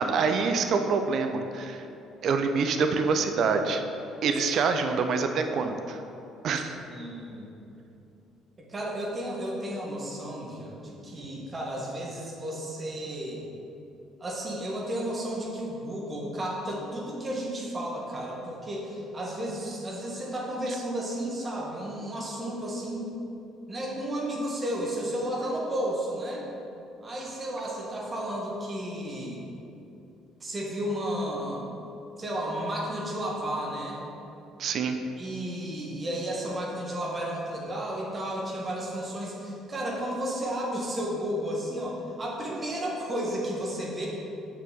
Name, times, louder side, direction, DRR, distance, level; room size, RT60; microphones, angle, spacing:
voice 1, 0.0-1.9 2.2-3.8 4.2-6.0 6.4-6.8 34.6-35.0, right 5 dB, 50° right, 6 dB, 0.5 m, -26 dB
voice 2, 6.9-7.5 8.6-13.4 14.2-23.1 23.7-26.5 27.0-29.4 30.4-31.8 32.2-34.0 35.2-44.1, right 1 dB, 30° right, -2 dB, 1.6 m, -33 dB
6.8 x 5.7 x 3.8 m, 2.8 s
figure-of-eight pair, 50°, 0 cm